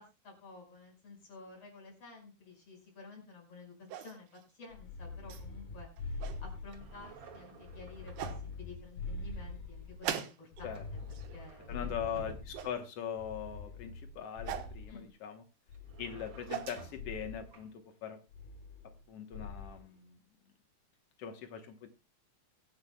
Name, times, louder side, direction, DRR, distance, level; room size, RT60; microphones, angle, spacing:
voice 1, 0.0-10.8 11.1-12.3 14.9-15.1, left 3 dB, 40° left, 1 dB, 6.0 m, -52 dB
sound 1, 3.9-4.4 5.3-5.4 6.0-6.4 7.5-7.6 8.2-8.4 10.0-10.7 11.0-11.4 12.5-12.8 14.4-14.7 16.1-16.8, right 10 dB, 80° right, 3.2 m, -40 dB
sound 2, 4.7-7.1 7.6-10.1 10.5-12.7 13.2-15.1 15.7-16.7 16.9-17.4 18.3-19.0 19.3-19.8, left 3 dB, 70° left, 5.0 m, -44 dB
sound 3, 6.7-8.7 10.7-12.8 15.7-17.2 17.5-17.7, right 2 dB, 35° right, 2.3 m, -53 dB
voice 2, 11.7-15.4 16.0-17.7 18.0-18.2 19.1-20.1 21.2-21.9, left 8 dB, 90° left, 6 dB, 1.3 m, -41 dB
23.0 x 10.5 x 2.2 m, 0.26 s
omnidirectional pair, 4.5 m